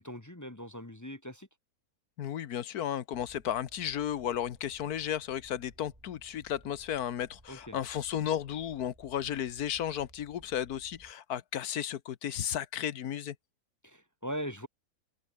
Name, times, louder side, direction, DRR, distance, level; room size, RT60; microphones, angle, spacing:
voice 1, 0.0-1.5 7.5-7.8 13.8-14.7, equal, 15° left, 0.9 m, -40 dB
voice 2, 2.2-13.3, left 10 dB, 90° left, 1.5 m, -34 dB
sound 1, 3.1-11.1, right 1 dB, 20° right, 6.7 m, -59 dB
omnidirectional pair, 1.6 m